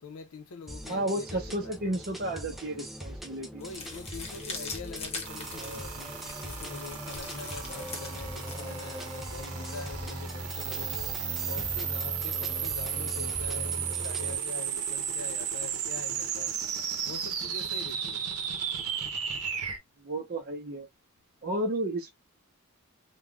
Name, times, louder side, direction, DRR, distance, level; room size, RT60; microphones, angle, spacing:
voice 1, 0.0-1.8 3.5-16.6 17.0-18.3, left 4 dB, 80° left, 0.6 m, -44 dB
sound 1, 0.7-14.4, equal, ahead, 0.4 m, -40 dB
voice 2, 0.9-3.6 5.5-5.8 8.4-8.7 20.0-20.9 21.4-22.1, right 1 dB, 45° right, 0.6 m, -33 dB
sound 2, 3.6-12.2, left 3 dB, 30° left, 1.0 m, -44 dB
sound 3, 5.2-19.8, right 8 dB, 90° right, 0.7 m, -34 dB
3.4 x 2.2 x 2.2 m
head